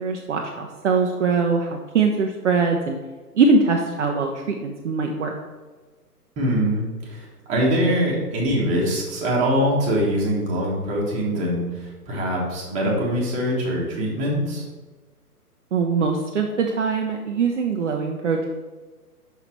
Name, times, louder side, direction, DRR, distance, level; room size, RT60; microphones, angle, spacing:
voice 1, 0.0-3.0 3.3-5.3 15.7-18.5, right 4 dB, 50° right, 2 dB, 0.7 m, -22 dB
voice 2, 6.4-14.6, equal, 15° right, -4 dB, 1.4 m, -23 dB
5.8 x 5.8 x 4.5 m, 1.3 s
figure-of-eight pair, 135°, 48 cm